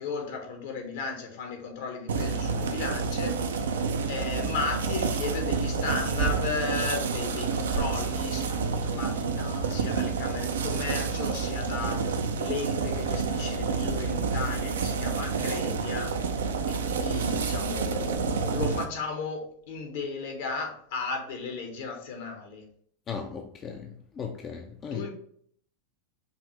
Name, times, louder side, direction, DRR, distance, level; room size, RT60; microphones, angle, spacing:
voice 1, 0.0-16.2 16.7-22.6 24.9-25.1, left 4 dB, 60° left, 1.1 m, -35 dB
sound 1, 2.1-18.8, right 5 dB, 75° right, 0.4 m, -29 dB
voice 2, 23.1-25.1, left 6 dB, 30° left, 0.4 m, -37 dB
5.2 x 2.6 x 3.1 m
figure-of-eight pair, 95°, 0 cm